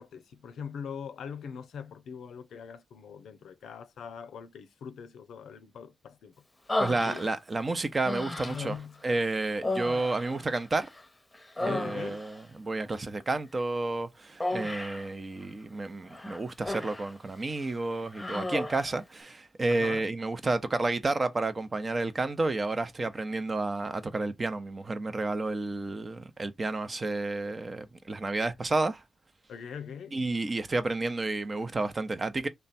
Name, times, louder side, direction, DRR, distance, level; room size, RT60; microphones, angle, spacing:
voice 1, 0.0-6.4 7.0-7.3 8.4-9.2 11.7-12.2 19.7-20.1 29.5-30.2, left 7 dB, 80° left, 0.5 m, -42 dB
Human voice, 6.7-7.6 8.0-8.8 9.6-11.0 11.3-12.4 14.4-15.1 16.1-17.1 17.5-17.7 18.1-18.9, left 2 dB, 20° left, 0.7 m, -34 dB
voice 2, 6.8-8.7 9.0-10.9 11.6-29.0 30.1-32.5, right 2 dB, 40° right, 0.7 m, -31 dB
3.2 x 2.2 x 4.0 m
supercardioid pair, 40°, 0 cm